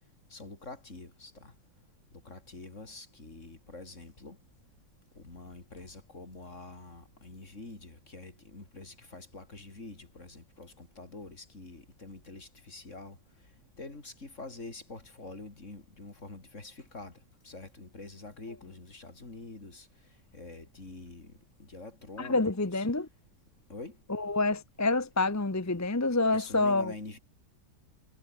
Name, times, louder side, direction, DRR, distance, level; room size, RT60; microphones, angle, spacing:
voice 1, 0.3-1.5 2.3-4.4 5.2-13.2 13.8-17.1 17.4-19.9 20.3-21.3 21.6-22.9 23.7-24.0 26.3-27.2, left 3 dB, 45° left, 4.2 m, -46 dB
voice 2, 22.2-23.1 24.1-26.9, left 2 dB, 15° left, 0.6 m, -27 dB
omnidirectional pair, 1.8 m